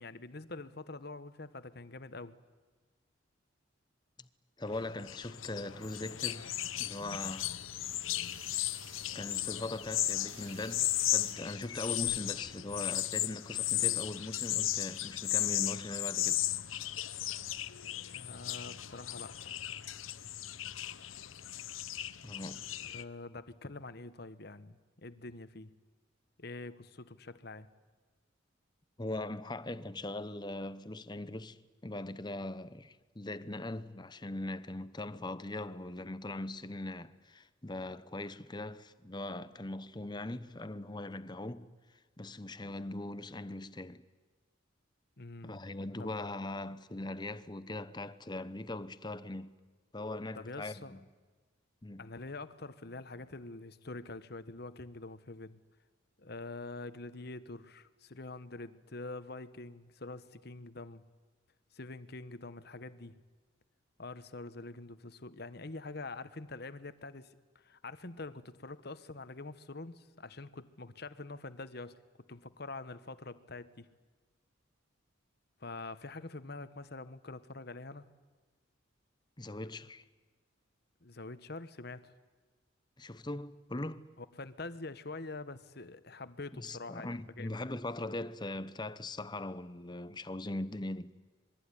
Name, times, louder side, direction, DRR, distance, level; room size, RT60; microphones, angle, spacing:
voice 1, 0.0-2.4 18.1-19.4 22.8-25.7 26.4-27.7 41.6-41.7 45.2-45.6 46.0-46.1 50.3-51.0 52.0-55.6 56.2-61.1 61.7-63.2 64.0-72.0 72.3-73.9 75.6-78.1 81.0-82.1 84.2-87.5, left 3 dB, 55° left, 1.2 m, -45 dB
voice 2, 4.6-7.5 9.1-16.4 22.2-22.7 29.0-41.7 42.2-44.0 45.4-49.5 49.9-51.0 51.8-52.0 79.4-80.0 83.0-84.1 86.5-91.1, left 2 dB, 20° left, 0.9 m, -40 dB
sound 1, 4.7-23.0, left 14 dB, 85° left, 0.9 m, -35 dB
sound 2, 5.8-11.3, right 4 dB, 75° right, 5.3 m, -58 dB
26.5 x 22.0 x 10.0 m
head